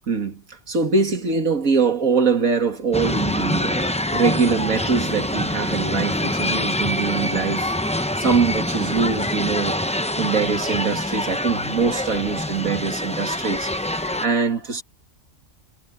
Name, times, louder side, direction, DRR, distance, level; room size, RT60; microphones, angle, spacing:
voice 1, 0.1-7.7 8.2-9.8 10.2-14.8, right 5 dB, 75° right, 2.8 m, -23 dB
sound 1, 2.9-14.3, left 1 dB, 5° left, 0.6 m, -25 dB
omnidirectional pair, 1.4 m